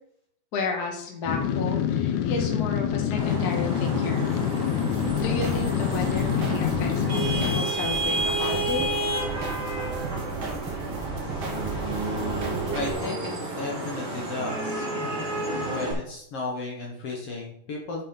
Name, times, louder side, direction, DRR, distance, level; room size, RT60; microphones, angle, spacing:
voice 1, 0.5-4.2 5.1-8.9, left 3 dB, 40° left, 0 dB, 1.6 m, -32 dB
sound 1, 1.3-7.6, left 9 dB, 85° left, 2.1 m, -26 dB
Vehicle horn car horn honking / Traffic noise roadway noise, 3.2-15.9, right 2 dB, 40° right, 3.0 m, -30 dB
sound 2, 4.9-12.9, right 5 dB, 55° right, 2.7 m, -36 dB
voice 2, 12.7-13.2 13.5-14.9 15.7-18.0, left 3 dB, 60° left, -1 dB, 2.0 m, -34 dB
7.3 x 5.6 x 5.6 m, 0.70 s
omnidirectional pair, 3.6 m